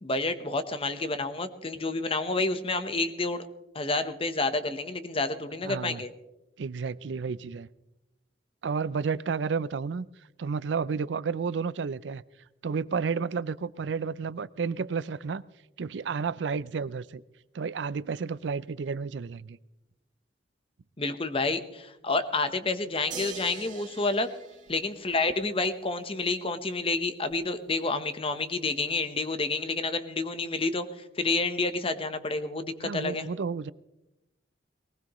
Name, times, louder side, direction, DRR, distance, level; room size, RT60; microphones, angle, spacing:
voice 1, 0.0-3.5 3.7-6.1 21.0-24.3 24.7-30.9 31.2-33.3, left 3 dB, 30° left, 1.0 m, -29 dB
voice 2, 5.6-6.0 6.6-7.7 8.6-10.1 10.4-12.2 12.6-15.4 15.8-17.2 17.5-19.6 32.8-33.7, right 5 dB, 75° right, 0.5 m, -31 dB
sound 1, 23.1-25.6 27.3-27.4, right 6 dB, 45° right, 3.2 m, -43 dB
20.0 x 19.5 x 3.1 m
head